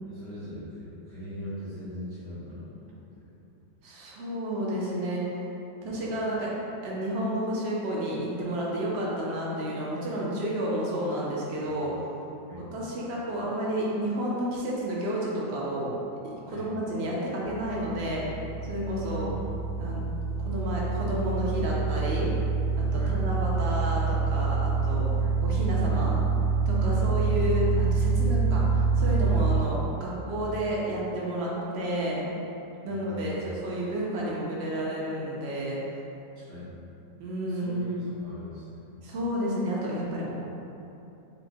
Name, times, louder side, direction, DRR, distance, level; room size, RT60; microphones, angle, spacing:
voice 1, 0.0-3.3 11.6-11.7 12.4-12.7 16.5-16.7 19.0-20.0 22.9-23.2 25.2-25.4 26.8-27.1 32.8-33.4 36.3-36.7 37.5-38.9, left 1 dB, 80° right, -13 dB, 1.4 m, -41 dB
voice 2, 3.8-5.2 5.8-6.5 6.8-11.9 12.6-15.9 16.2-18.2 18.7-19.3 19.8-20.0 20.4-22.3 22.8-25.1 25.4-26.2 26.7-32.2 32.8-35.8 37.2-38.1 39.0-40.3, equal, 60° right, -5 dB, 0.7 m, -31 dB
sound 1, 17.4-29.6, right 4 dB, 75° left, 1.5 m, -26 dB
5.7 x 2.1 x 2.6 m, 2.8 s
omnidirectional pair, 1.8 m